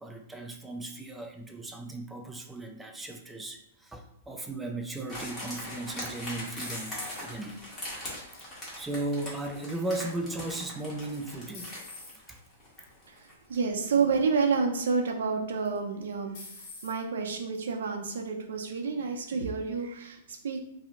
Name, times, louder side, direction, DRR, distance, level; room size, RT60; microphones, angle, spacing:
voice 1, 0.0-8.5 8.8-11.7 12.3-12.4, right 2 dB, 5° right, 3 dB, 0.3 m, -37 dB
sound 1, 5.1-13.7 14.0-14.1, left 1 dB, 15° left, 1.2 m, -41 dB
sound 2, 6.6-7.6 8.1-8.6 10.6-11.0 11.5-12.2 13.0-13.2 13.6-13.7 15.6-16.0 16.3-17.0, left 3 dB, 45° left, 1.2 m, -47 dB
voice 2, 13.1-20.6, right 5 dB, 80° right, 4 dB, 0.5 m, -29 dB
2.7 x 2.1 x 3.7 m, 0.81 s
hypercardioid pair, 150°, 0 cm